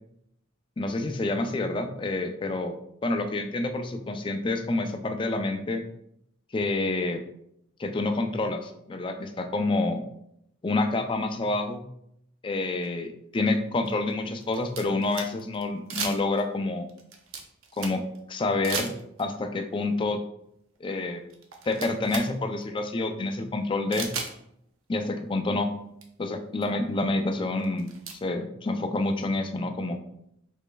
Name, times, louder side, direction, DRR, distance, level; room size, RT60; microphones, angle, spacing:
voice 1, 0.8-2.8 3.0-5.8 6.5-7.2 7.8-10.0 10.6-11.8 12.4-16.9 17.8-18.0 18.3-18.9 19.2-20.2 20.8-21.2 21.7-24.1 24.9-25.7 26.2-27.9 28.2-30.0, left 2 dB, 25° left, 6 dB, 0.4 m, -28 dB
sound 1, 12.8-12.9 13.8-15.6 15.9-16.5 16.9-18.2 18.6-19.3 20.7-20.8 21.3-22.3 22.6-22.7 23.9-24.3 25.6-25.7 26.0-26.1 26.6-26.7 27.6-28.2, right 5 dB, 85° right, 0.7 m, -35 dB
5.1 x 4.2 x 2.2 m, 0.75 s
head